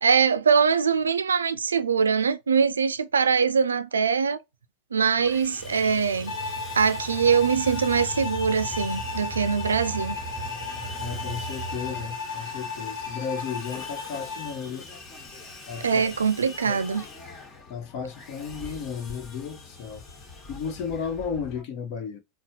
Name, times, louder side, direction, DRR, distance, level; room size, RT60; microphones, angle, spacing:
voice 1, 0.0-4.4 4.9-6.3 6.8-10.1 15.8-17.1, right 6 dB, 90° right, 0.3 m, -23 dB
Sawing, 5.2-21.6, left 3 dB, 35° left, 1.3 m, -44 dB
sound 1, 5.6-12.1, right 2 dB, 5° right, 0.8 m, -38 dB
Bowed string instrument, 6.3-14.6, left 4 dB, 85° left, 0.9 m, -35 dB
voice 2, 11.0-14.9 15.7-16.1 16.7-16.8 17.7-20.0 20.5-22.2, left 6 dB, 55° left, 0.8 m, -34 dB
4.1 x 2.0 x 2.7 m
hypercardioid pair, 95°, 0 cm